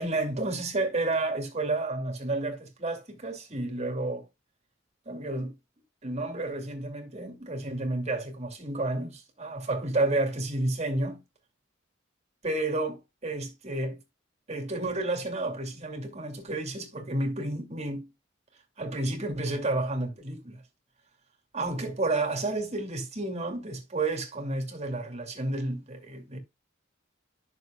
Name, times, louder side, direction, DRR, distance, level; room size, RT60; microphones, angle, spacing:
voice 1, 0.0-4.2 5.1-5.5 6.0-11.2 12.4-14.0 14.5-18.1 18.8-20.6 21.5-26.4, right 2 dB, 35° right, 2.5 m, -31 dB
11.0 x 6.6 x 2.3 m
head